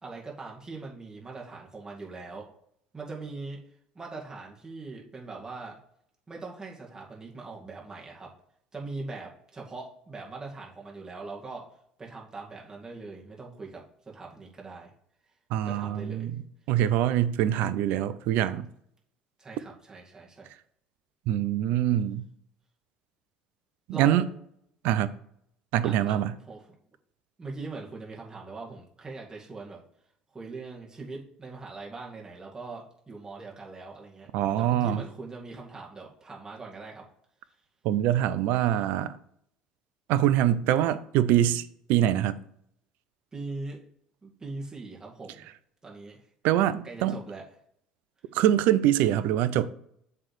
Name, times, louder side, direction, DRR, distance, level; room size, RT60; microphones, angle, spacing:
voice 1, 0.0-2.6 2.9-3.6 3.9-5.8 6.3-8.4 8.7-11.7 12.0-14.9 15.6-16.3 19.4-20.5 23.9-24.3 25.8-26.7 27.4-29.8 30.3-34.3 34.6-37.1 43.3-43.8 44.2-45.5 45.8-46.2 46.8-47.4, right 3 dB, 20° right, 2.2 m, -41 dB
voice 2, 15.5-16.4 16.7-18.7 21.3-22.3 23.9-24.2 24.8-25.1 25.7-26.3 34.3-35.0 37.8-39.2 40.1-42.4 46.4-47.2 48.3-49.7, right 11 dB, 70° right, 0.5 m, -24 dB
7.6 x 3.4 x 6.3 m
hypercardioid pair, 65°, 3 cm